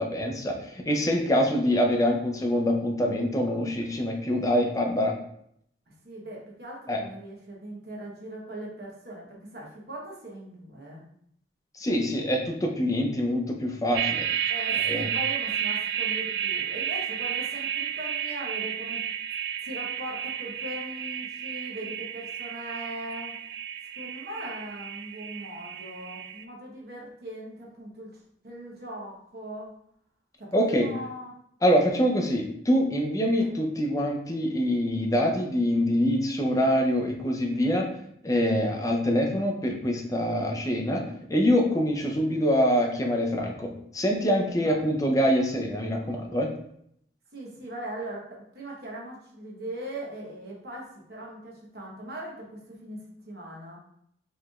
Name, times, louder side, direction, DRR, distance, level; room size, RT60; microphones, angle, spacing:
voice 1, 0.0-5.1 6.9-7.0 11.7-14.3 14.9-15.1 30.5-30.9 31.6-37.9 38.2-46.5, equal, 20° left, 1 dB, 0.6 m, -25 dB
voice 2, 6.0-11.0 14.5-19.0 19.6-23.3 24.0-28.1 28.4-29.7 30.4-31.3 33.4-33.5 38.5-38.9 44.6-44.9 47.3-53.8, right 1 dB, 60° right, -3 dB, 1.0 m, -40 dB
sound 1, 13.9-26.4, right 9 dB, 80° right, 0.3 m, -32 dB
4.7 x 3.2 x 2.4 m, 0.71 s
head